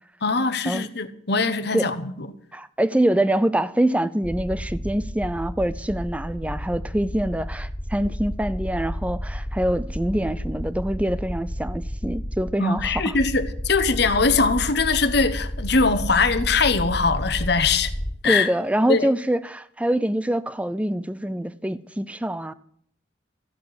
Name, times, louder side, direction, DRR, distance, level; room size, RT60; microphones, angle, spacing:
voice 1, 0.2-2.3 12.6-17.9 18.2-18.5 18.9-19.1, left 4 dB, 55° left, 1.1 m, -22 dB
voice 2, 2.5-13.2 18.2-22.5, right 1 dB, 5° right, 0.5 m, -25 dB
sound 1, 4.2-18.1, equal, 25° left, 2.2 m, -31 dB
15.0 x 6.7 x 9.5 m
head